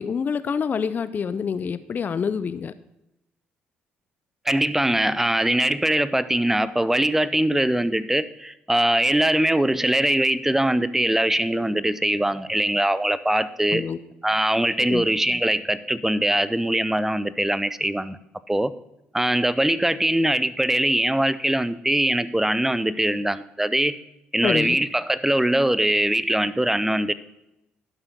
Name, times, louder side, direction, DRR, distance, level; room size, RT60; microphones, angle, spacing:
voice 1, 0.0-2.7 13.7-14.0 14.9-15.0 24.4-24.8, left 6 dB, 45° left, 14 dB, 0.4 m, -26 dB
voice 2, 4.5-13.8 14.2-18.2 18.5-18.7 19.1-24.0 24.3-27.1, right 1 dB, 10° right, 15 dB, 0.5 m, -22 dB
11.5 x 5.7 x 5.4 m, 0.86 s
supercardioid pair, 60°, 4 cm